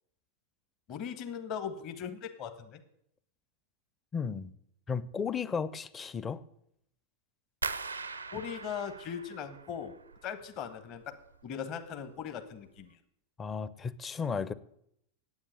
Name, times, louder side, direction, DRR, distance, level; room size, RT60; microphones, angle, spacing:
voice 1, 0.9-2.8 8.3-9.9 10.2-11.2 11.4-13.0, left 7 dB, 40° left, 1.0 m, -39 dB
voice 2, 4.1-4.5 4.9-6.4 13.4-14.5, left 6 dB, 20° left, 0.6 m, -34 dB
sound 1, 7.6-10.5 10.8-11.5 11.8-12.2 12.7-12.8, right 4 dB, 80° right, 0.6 m, -41 dB
9.6 x 8.7 x 8.8 m
figure-of-eight pair, 90°, 0 cm